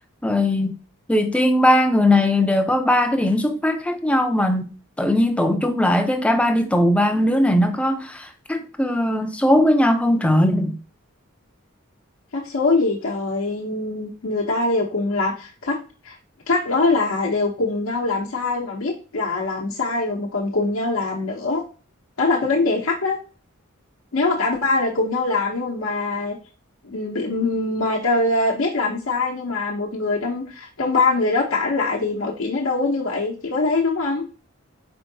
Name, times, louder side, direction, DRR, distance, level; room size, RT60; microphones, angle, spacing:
voice 1, 0.2-0.7 1.1-4.7 5.0-10.8, left 1 dB, 5° left, 0.4 m, -19 dB
voice 2, 12.3-15.8 16.0-16.2 16.5-21.6 22.2-23.2 24.1-26.4 26.8-34.2, left 3 dB, 75° left, 0.8 m, -23 dB
4.5 x 4.4 x 2.7 m
head